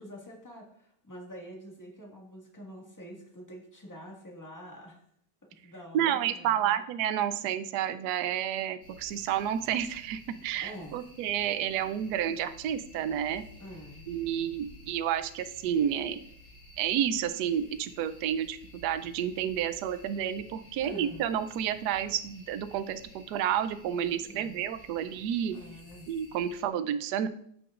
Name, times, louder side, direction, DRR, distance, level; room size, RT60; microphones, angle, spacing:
voice 1, 0.0-5.0 5.5-6.8 10.6-11.0 13.6-14.1 20.8-21.2 24.2-24.6 25.5-26.1, equal, 10° left, -1 dB, 1.4 m, -46 dB
voice 2, 5.9-13.4 14.1-16.2 16.8-25.6 26.1-27.3, right 9 dB, 85° right, 11 dB, 0.9 m, -30 dB
sound 1, 8.8-26.6, left 1 dB, 50° left, 3.1 m, -53 dB
14.5 x 5.9 x 2.4 m, 0.68 s
omnidirectional pair, 2.3 m